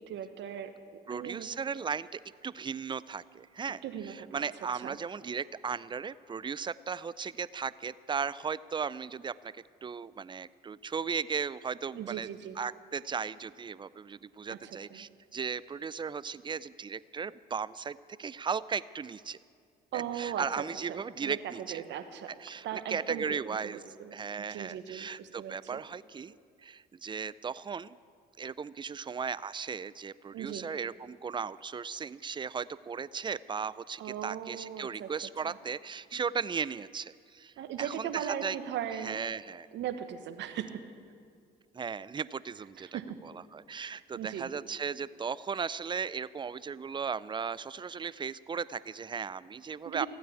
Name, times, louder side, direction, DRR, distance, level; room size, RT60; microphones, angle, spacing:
voice 1, 0.1-0.7 1.1-1.5 3.8-5.0 11.9-12.6 14.5-15.1 19.9-22.3 22.6-23.4 23.6-25.8 30.3-30.7 34.0-35.1 35.4-35.6 37.6-39.2 39.7-40.8 42.8-43.1 43.8-44.5 49.8-50.1, right 9 dB, 70° right, 9 dB, 1.2 m, -39 dB
voice 2, 1.1-3.8 4.3-12.3 12.6-19.4 19.9-21.8 22.4-23.8 24.1-26.3 26.6-28.0 28.4-38.6 39.0-39.7 41.7-43.0 43.5-50.1, right 6 dB, 25° right, 19 dB, 0.4 m, -36 dB
15.0 x 9.3 x 8.4 m, 2.2 s
supercardioid pair, 70°, 19 cm